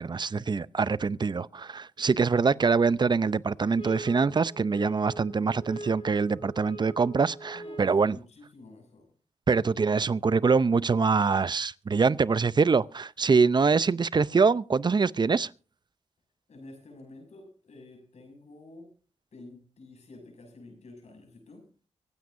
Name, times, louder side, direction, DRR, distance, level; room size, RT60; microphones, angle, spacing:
voice 1, 0.0-8.2 9.5-15.5, right 5 dB, 40° right, 0.6 m, -24 dB
sound 1, 3.8-8.1, right 1 dB, 50° left, 3.2 m, -42 dB
voice 2, 7.5-9.1 16.5-18.9 19.3-21.7, left 2 dB, 70° left, 6.3 m, -49 dB
24.5 x 9.4 x 2.6 m
cardioid pair, 55°, 12 cm